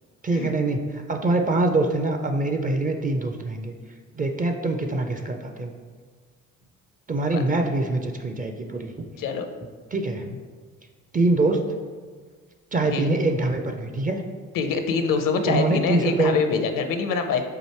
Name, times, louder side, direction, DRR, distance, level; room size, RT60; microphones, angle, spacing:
voice 1, 0.2-3.7 4.1-5.7 7.1-9.0 9.9-10.2 11.1-11.6 12.7-14.2 15.5-16.4, right 2 dB, 20° right, 4 dB, 0.4 m, -24 dB
voice 2, 14.5-17.4, left 5 dB, 55° left, 7 dB, 0.6 m, -25 dB
4.8 x 2.5 x 4.4 m, 1.5 s
hypercardioid pair, 45°, 40 cm